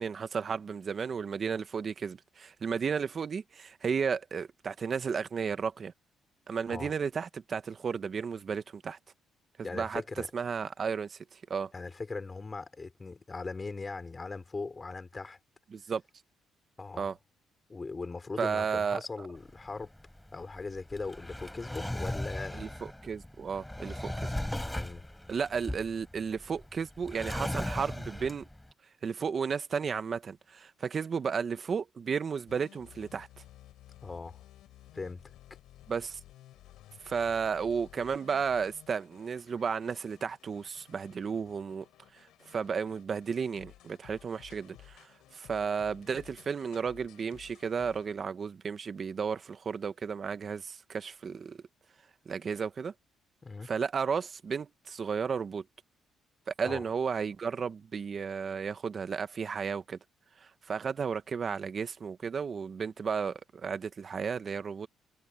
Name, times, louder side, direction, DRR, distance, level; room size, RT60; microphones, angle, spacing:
voice 1, 0.0-5.9 6.5-9.0 9.7-10.0 10.3-11.7 15.7-16.0 17.0-17.2 18.4-19.3 22.5-24.3 25.3-28.5 29.0-33.3 35.9-36.2 37.0-41.9 42.1-51.6 52.3-52.9 53.6-55.6 56.6-60.0 60.4-64.9, right 6 dB, 45° right, 1.0 m, -33 dB
voice 2, 9.6-10.3 11.7-15.4 16.8-17.1 17.7-19.9 20.3-22.6 24.7-25.1 34.0-34.4 34.9-35.3 53.4-53.7 56.6-56.9, left 3 dB, 30° left, 4.9 m, -39 dB
Drawer open or close, 19.4-28.7, left 1 dB, 5° left, 4.8 m, -38 dB
sound 1, 32.5-48.1, left 14 dB, 85° left, 5.2 m, -56 dB
supercardioid pair, 75°, 0 cm